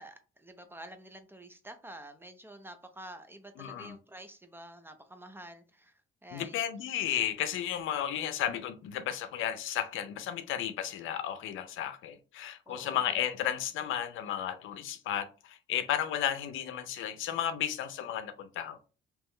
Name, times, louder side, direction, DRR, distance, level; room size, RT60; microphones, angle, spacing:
voice 1, 0.0-5.9 6.2-6.6 12.7-13.2, right 1 dB, 10° right, 0.6 m, -49 dB
voice 2, 3.6-4.0 6.3-18.8, left 10 dB, 80° left, 0.6 m, -33 dB
3.6 x 3.0 x 3.2 m
cardioid pair, 90°, 20 cm